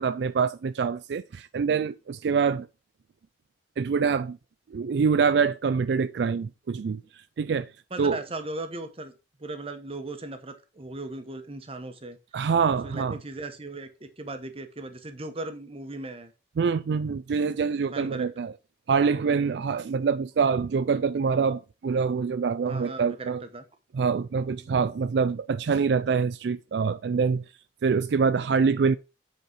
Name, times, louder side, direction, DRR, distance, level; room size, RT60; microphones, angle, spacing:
voice 1, 0.0-2.7 3.8-4.4 4.7-7.0 7.4-7.7 8.0-8.2 12.3-13.2 16.6-18.5 18.9-23.4 23.9-27.4 27.8-29.0, right 5 dB, 70° right, 0.4 m, -25 dB
voice 2, 7.9-9.1 9.4-12.2 12.8-16.3 17.9-18.3 19.2-19.6 22.7-23.7 24.5-24.7, right 2 dB, 35° right, 1.0 m, -38 dB
8.1 x 4.4 x 4.7 m
head